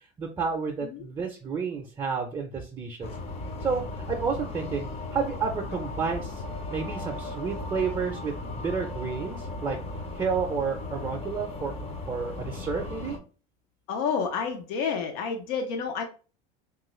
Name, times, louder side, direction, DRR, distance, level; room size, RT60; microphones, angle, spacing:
voice 1, 0.2-3.1 3.6-6.4 6.7-9.8 10.1-11.7 12.1-13.2, right 5 dB, 20° right, 1 dB, 0.5 m, -31 dB
sound 1, 3.0-13.2, left 2 dB, 30° left, 0.5 m, -36 dB
voice 2, 13.9-16.0, left 6 dB, 80° left, 4 dB, 0.6 m, -29 dB
3.0 x 2.4 x 3.0 m, 0.36 s
supercardioid pair, 120°, 20 cm